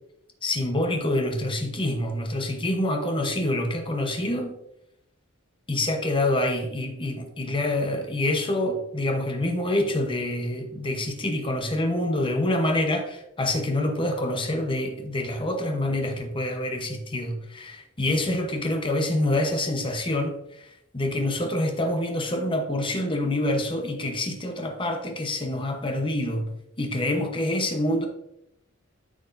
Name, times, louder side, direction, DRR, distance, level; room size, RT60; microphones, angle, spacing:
voice 1, 0.4-4.6 5.7-26.5 26.8-28.1, left 1 dB, 25° left, 0.9 m, -26 dB
9.8 x 6.2 x 2.6 m
head